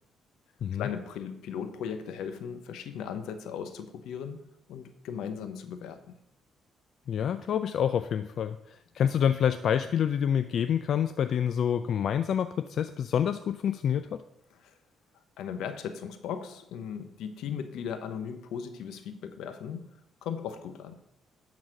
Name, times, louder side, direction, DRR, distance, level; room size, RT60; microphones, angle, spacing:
voice 1, 0.8-4.4 4.7-6.2 14.6-14.7 15.4-19.8 20.2-20.9, left 7 dB, 85° left, 9 dB, 0.8 m, -37 dB
voice 2, 7.1-14.2, left 8 dB, 65° left, 9 dB, 0.4 m, -27 dB
11.0 x 4.1 x 5.9 m, 0.79 s
cardioid pair, 90°, 0 cm